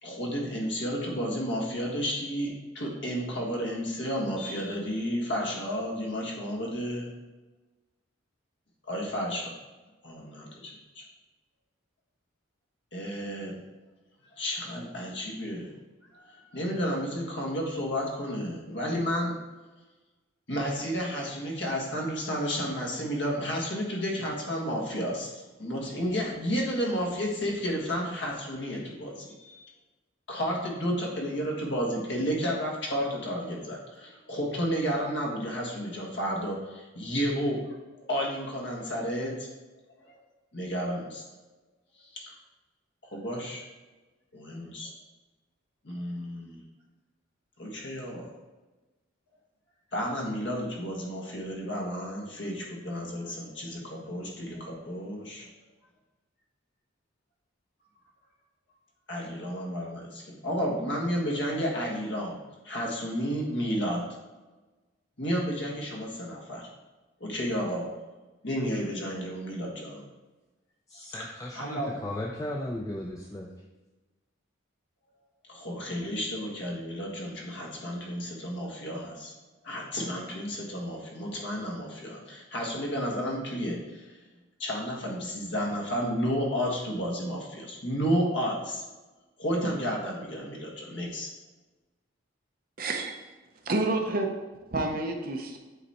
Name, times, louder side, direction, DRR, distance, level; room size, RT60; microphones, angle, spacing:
voice 1, 0.0-7.1 8.8-9.5 10.0-11.0 12.9-13.5 14.3-15.7 16.1-19.3 20.5-29.6 30.3-39.5 40.1-40.2 40.5-41.2 42.0-42.3 43.1-43.7 44.3-44.9 45.8-46.6 47.6-48.3 49.9-55.5 59.1-62.4 62.6-64.2 65.2-66.7 67.2-67.9 68.4-70.0 70.9-71.3 71.5-72.0 75.5-79.3 79.6-84.2 84.6-88.8 89.4-91.3, equal, 60° left, -1 dB, 1.6 m, -32 dB
voice 2, 70.9-73.5, left 1 dB, 15° left, 0 dB, 0.4 m, -36 dB
voice 3, 92.8-93.1 93.6-95.6, right 2 dB, 45° right, 3 dB, 0.8 m, -29 dB
8.1 x 4.0 x 4.3 m, 1.2 s
head